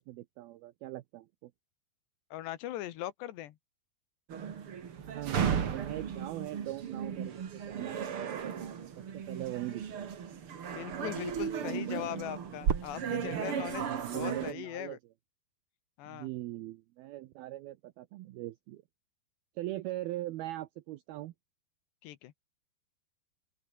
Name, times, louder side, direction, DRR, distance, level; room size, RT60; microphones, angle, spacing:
voice 1, 0.0-1.5 5.0-10.1 13.0-15.0 16.0-18.8 19.6-21.3, right 16 dB, 75° right, 2.4 m, -41 dB
voice 2, 2.3-3.6 10.7-13.9 14.1-15.0 16.0-16.3 22.0-22.3, left 13 dB, 80° left, 3.5 m, -40 dB
sound 1, 4.3-14.5, right 7 dB, 45° right, 1.9 m, -35 dB
open air
omnidirectional pair, 5.1 m